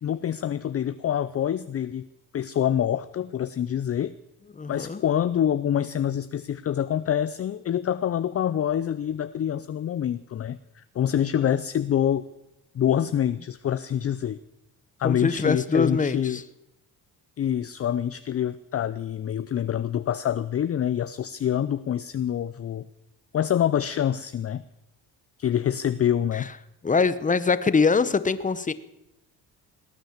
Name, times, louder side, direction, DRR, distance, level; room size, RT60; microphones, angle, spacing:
voice 1, 0.0-2.1 2.3-4.1 4.7-12.3 12.7-14.4 15.0-16.4 17.4-22.8 23.3-24.6 25.4-26.5, left 10 dB, 40° left, 13 dB, 0.5 m, -26 dB
voice 2, 4.6-5.0 15.0-16.4 26.3-26.5 26.8-28.7, left 4 dB, 20° left, 15 dB, 0.9 m, -23 dB
19.0 x 8.9 x 7.3 m, 0.92 s
cardioid pair, 85°, 38 cm